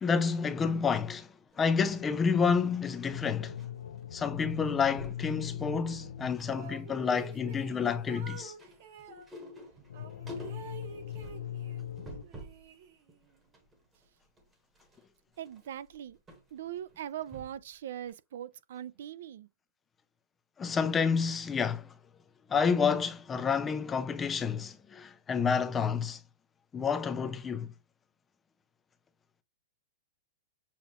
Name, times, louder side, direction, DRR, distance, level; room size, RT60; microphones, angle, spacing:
voice 1, 0.0-1.3 1.6-3.6 4.1-8.5 20.6-21.9 22.5-26.2 26.7-27.7, left 6 dB, 10° left, 0.4 m, -29 dB
sound 1, 1.5-3.7 3.9-4.2 4.5-5.3 5.8-6.5 6.8-12.7 13.1-17.7 18.1-18.2, equal, 10° right, 1.0 m, -50 dB
sound 2, 3.1-6.6 9.8-12.2, left 10 dB, 80° left, 0.5 m, -40 dB
sound 3, 6.4-9.3 9.9-11.9 12.2-13.3, right 6 dB, 45° right, 1.0 m, -49 dB
voice 2, 15.4-16.2 16.5-19.5, right 10 dB, 60° right, 0.4 m, -41 dB
6.9 x 2.4 x 2.9 m
supercardioid pair, 170°, 0 cm